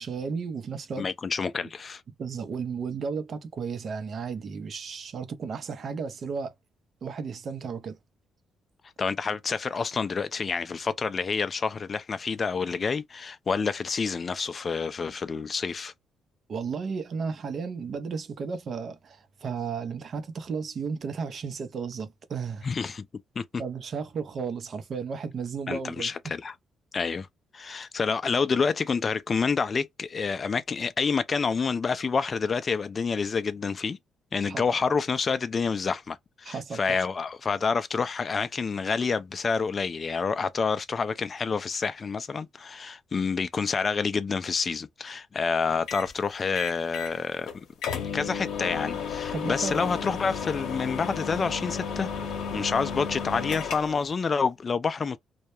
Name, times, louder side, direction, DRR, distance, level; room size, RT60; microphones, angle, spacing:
voice 1, 0.0-1.1 2.2-6.5 7.0-8.0 16.5-22.7 23.6-26.1 34.5-34.6 36.4-37.0 49.3-49.9, right 5 dB, 55° right, 0.6 m, -34 dB
voice 2, 1.0-2.0 9.0-15.9 22.6-23.0 23.4-23.5 25.7-26.5 26.9-27.3 27.5-34.0 34.3-47.5 48.1-52.1 52.5-55.2, left 5 dB, 40° left, 0.3 m, -28 dB
sound 1, 45.9-46.1 46.5-47.2 47.5-47.6 47.8-54.1, left 6 dB, 80° left, 0.7 m, -33 dB
2.2 x 2.1 x 2.9 m
cardioid pair, 90°, 0 cm